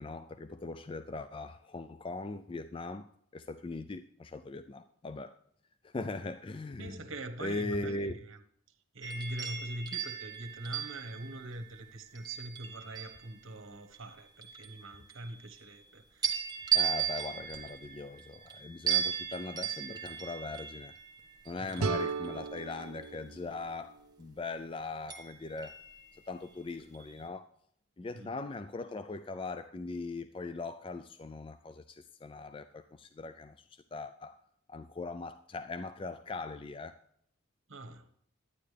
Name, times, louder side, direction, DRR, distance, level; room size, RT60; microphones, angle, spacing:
voice 1, 0.0-5.3 5.8-7.1 7.4-8.2 16.7-20.9 21.5-25.8 26.3-27.5 28.0-34.4 34.7-37.0, left 3 dB, 25° left, 0.3 m, -40 dB
voice 2, 6.8-8.4 8.9-16.3 21.6-21.9 28.1-28.3 37.7-38.1, right 1 dB, 70° right, 1.2 m, -43 dB
sound 1, 9.0-13.4 13.9-15.8 16.2-23.2 25.1-26.5 26.9-27.2, right 9 dB, 20° right, 1.2 m, -37 dB
sound 2, 21.8-24.7, right 4 dB, 90° right, 0.7 m, -37 dB
11.5 x 9.7 x 3.3 m
head